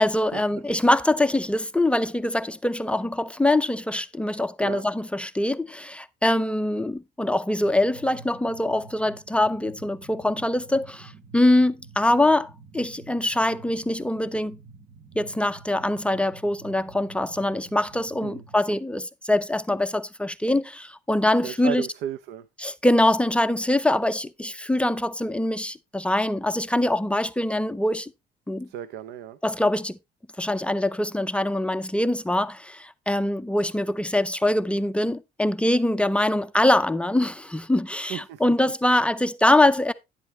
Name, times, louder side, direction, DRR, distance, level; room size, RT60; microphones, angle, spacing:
voice 1, 0.0-14.6 15.1-21.9 22.6-28.1 28.5-28.7 29.4-30.0 30.4-39.9, left 1 dB, 5° left, 0.5 m, -23 dB
sound 1, 7.6-18.6, right 4 dB, 55° right, 3.0 m, -49 dB
voice 2, 21.4-22.5 28.7-29.4 38.1-38.6 38.9-39.0, right 10 dB, 80° right, 0.7 m, -34 dB
10.5 x 8.1 x 3.1 m
cardioid pair, 110°, 17 cm